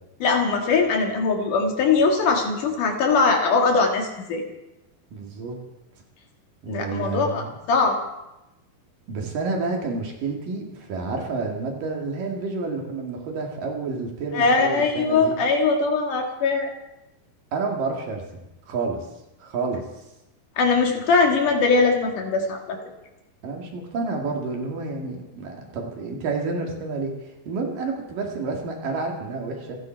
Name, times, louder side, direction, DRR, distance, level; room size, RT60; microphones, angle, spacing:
voice 1, 0.2-4.4 6.7-8.0 14.3-16.7 20.6-22.8, left 4 dB, 60° left, 3 dB, 3.2 m, -21 dB
voice 2, 5.1-5.6 6.6-7.5 9.1-15.4 17.5-18.2 18.7-19.1 19.4-19.8 23.4-29.8, right 3 dB, 65° right, 1 dB, 3.8 m, -29 dB
28.0 x 10.5 x 4.6 m, 0.94 s
omnidirectional pair, 4.3 m